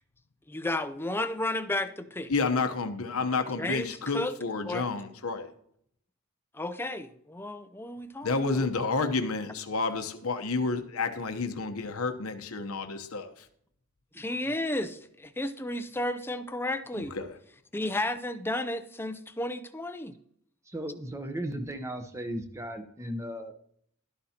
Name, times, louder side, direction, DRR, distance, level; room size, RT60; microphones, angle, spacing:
voice 1, 0.5-2.3 3.6-4.3 4.7-4.9 6.5-8.5 14.2-17.1 17.7-20.1, left 1 dB, 10° left, 10 dB, 0.5 m, -33 dB
voice 2, 2.3-5.5 8.2-13.4 16.9-17.3, left 4 dB, 75° left, 7 dB, 1.0 m, -30 dB
voice 3, 20.7-23.5, right 1 dB, 15° right, 6 dB, 0.9 m, -36 dB
12.0 x 11.5 x 2.9 m, 0.67 s
head